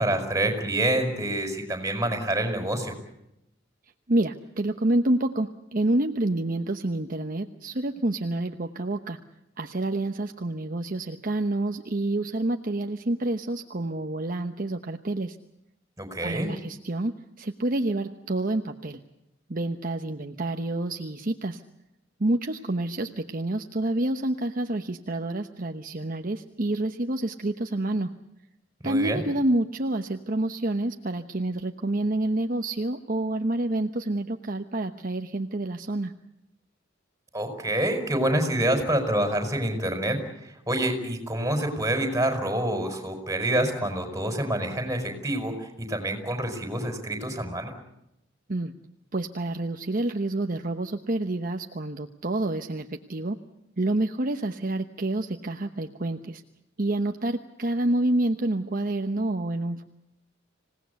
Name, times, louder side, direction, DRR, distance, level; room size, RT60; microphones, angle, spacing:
voice 1, 0.0-2.9 16.0-16.5 28.8-29.2 37.3-47.7, right 1 dB, 15° right, 5 dB, 5.1 m, -27 dB
voice 2, 4.1-9.2 9.6-15.4 16.2-17.1 17.4-19.0 19.5-21.6 22.2-28.1 28.8-36.1 48.5-48.7 49.1-53.4 53.8-56.4 56.8-59.8, right 1 dB, 45° right, 5 dB, 1.0 m, -28 dB
27.0 x 18.0 x 8.2 m, 0.84 s
head